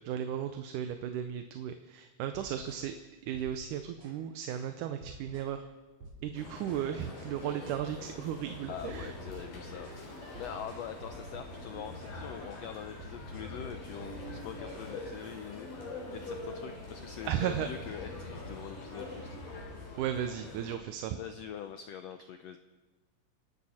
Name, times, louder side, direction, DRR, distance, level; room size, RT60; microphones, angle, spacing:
voice 1, 0.0-3.0 3.3-5.7 6.2-9.1 17.3-17.7 20.0-21.2, right 10 dB, 80° right, 8 dB, 2.2 m, -35 dB
sound 1, 2.3-2.9 3.3-4.2 4.5-4.7 5.0-5.6 6.0-6.9 7.2-7.4 7.7-8.2 8.7-12.2 12.5-12.7 13.0-13.6 14.0-14.8, right 1 dB, 55° right, 4.1 m, -51 dB
sound 2, 6.3-20.8, left 2 dB, 75° left, 5.3 m, -44 dB
voice 2, 8.7-9.9 10.4-19.4 21.2-22.6, left 8 dB, 90° left, 8 dB, 1.4 m, -44 dB
28.0 x 12.0 x 4.3 m, 1.2 s
omnidirectional pair, 3.8 m